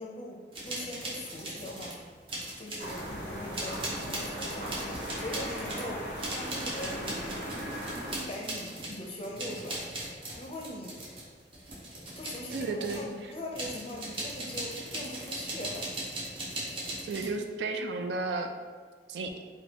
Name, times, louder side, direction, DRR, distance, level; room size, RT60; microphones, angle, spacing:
voice 1, 0.0-2.0 2.6-4.7 5.2-6.1 6.3-7.4 8.1-9.8 10.4-11.0 12.2-15.9, left 1 dB, 30° left, -1 dB, 0.5 m, -41 dB
sound 1, 0.5-2.0 2.3-3.1 3.5-13.1 13.6-17.4, right 1 dB, 30° right, 0.7 m, -39 dB
sound 2, 2.8-8.2, equal, 85° right, 1.2 m, -38 dB
voice 2, 12.5-13.0 17.0-18.5 19.1-19.4, right 3 dB, 70° right, 5 dB, 0.3 m, -33 dB
4.2 x 2.2 x 2.8 m, 1.5 s
head